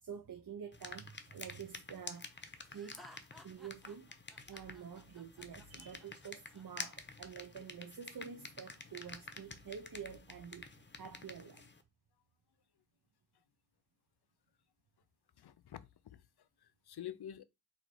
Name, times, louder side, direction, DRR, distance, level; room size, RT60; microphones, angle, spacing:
voice 1, 0.0-3.0 3.4-4.1 4.5-11.7, right 7 dB, 65° right, 0.7 m, -48 dB
sound 1, 0.7-11.8, left 3 dB, 30° left, 0.7 m, -50 dB
Laughter, 2.7-6.6, left 1 dB, ahead, 1.0 m, -58 dB
voice 2, 15.4-17.4, left 11 dB, 85° left, 0.5 m, -49 dB
4.0 x 2.8 x 4.7 m
wide cardioid pair, 60°, 38 cm